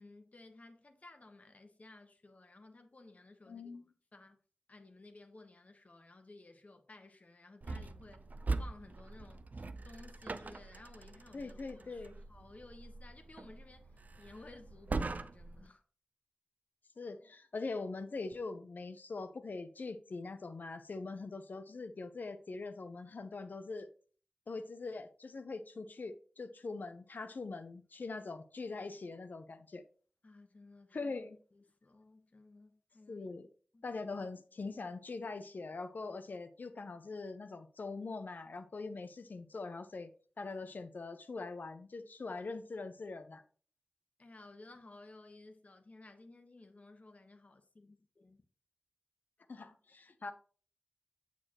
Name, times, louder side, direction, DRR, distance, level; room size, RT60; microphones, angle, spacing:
voice 1, 0.0-3.9 4.1-4.4 4.7-8.2 8.6-15.8 30.2-31.2 31.5-33.3 33.7-33.8 44.2-48.4, left 2 dB, 50° left, 1.2 m, -56 dB
voice 2, 3.5-3.9 11.3-12.2 17.0-23.9 24.5-29.8 30.9-31.4 33.1-33.5 33.8-40.1 40.4-43.4 49.5-50.3, left 3 dB, 70° left, 0.7 m, -42 dB
sound 1, 7.6-15.7, right 3 dB, 60° right, 0.5 m, -42 dB
7.1 x 6.6 x 3.0 m
cardioid pair, 40°, 3 cm